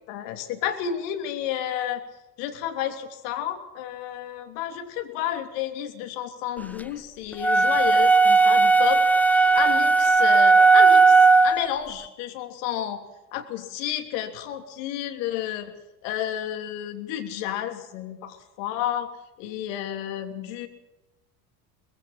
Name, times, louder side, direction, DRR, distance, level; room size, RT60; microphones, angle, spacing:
voice 1, 0.0-2.0 2.4-11.2 11.4-13.0 13.3-15.7 16.0-19.1 19.4-20.7, left 10 dB, 65° left, 6 dB, 3.3 m, -31 dB
sound 1, 7.4-11.7, right 4 dB, 5° left, 0.9 m, -16 dB
23.5 x 20.5 x 5.9 m, 0.97 s
hypercardioid pair, 75°, 48 cm